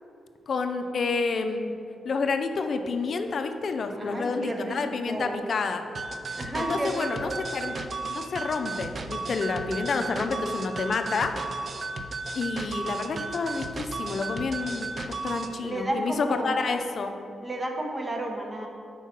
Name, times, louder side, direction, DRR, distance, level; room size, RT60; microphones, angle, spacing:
voice 1, 0.5-1.8 2.0-5.8 6.5-7.8 8.0-11.4 12.4-17.1, left 4 dB, 60° left, 7 dB, 0.5 m, -29 dB
voice 2, 4.0-5.4 6.3-7.4 15.6-16.6 17.4-18.7, right 1 dB, 25° right, 1 dB, 1.0 m, -32 dB
sound 1, 5.9-15.5, right 3 dB, 50° right, 0.4 m, -34 dB
4.6 x 4.5 x 5.8 m, 2.5 s
cardioid pair, 60°, 0 cm